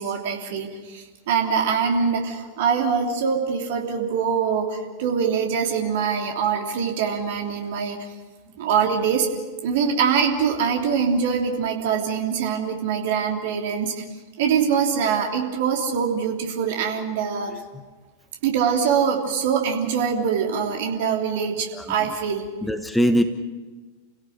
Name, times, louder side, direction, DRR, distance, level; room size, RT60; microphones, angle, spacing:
voice 1, 0.0-8.0 8.6-9.3 9.6-14.0 14.4-17.6 18.4-22.5, right 6 dB, 55° right, 2 dB, 3.2 m, -23 dB
voice 2, 17.5-17.8 21.7-22.2 22.6-23.2, equal, 5° left, 7 dB, 1.3 m, -23 dB
30.0 x 17.0 x 6.4 m, 1.3 s
figure-of-eight pair, 90°, 0 cm